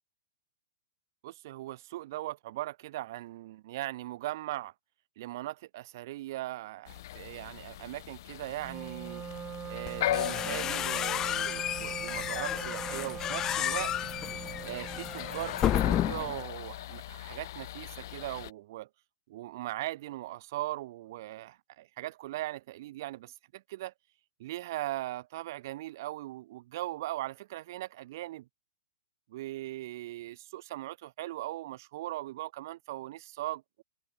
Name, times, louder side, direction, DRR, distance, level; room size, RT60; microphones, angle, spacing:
voice 1, 1.2-4.7 5.2-9.2 9.7-13.9 14.7-14.9 15.1-18.9 19.3-23.9 24.4-28.5 29.3-33.8, right 16 dB, 50° right, 1.4 m, -39 dB
sound 1, 6.9-18.5, left 14 dB, 55° left, 0.7 m, -39 dB
Wind instrument woodwind instrument, 8.6-16.4, right 9 dB, 20° right, 4.7 m, -42 dB
sound 2, 9.9-16.4, left 11 dB, 20° left, 1.2 m, -32 dB
hypercardioid pair, 145°, 2 cm